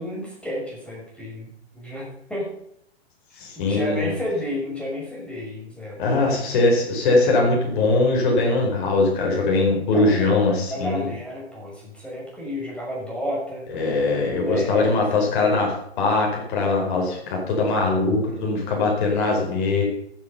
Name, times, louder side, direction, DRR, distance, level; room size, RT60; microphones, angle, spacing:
voice 1, 0.0-1.5 1.7-2.5 3.3-6.0 9.9-10.3 10.7-13.7 14.4-15.0, left 1 dB, 5° left, -4 dB, 5.8 m, -31 dB
voice 2, 3.4-4.1 6.0-11.1 13.7-19.8, left 3 dB, 50° left, -1 dB, 4.6 m, -21 dB
14.0 x 9.2 x 5.6 m, 0.73 s
figure-of-eight pair, 115°, 33 cm